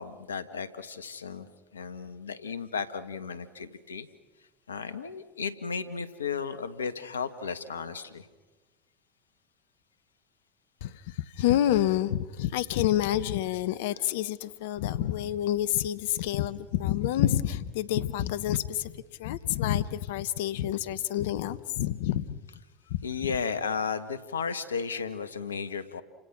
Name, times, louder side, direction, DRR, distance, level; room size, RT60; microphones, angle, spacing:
voice 1, 0.0-1.5 1.7-4.1 4.7-8.3 23.0-26.0, left 6 dB, 90° left, 12 dB, 1.5 m, -34 dB
voice 2, 10.8-22.4 22.9-23.1, left 12 dB, 70° left, 16 dB, 1.0 m, -28 dB
29.5 x 26.5 x 6.1 m, 1.2 s
hypercardioid pair, 75°, 0 cm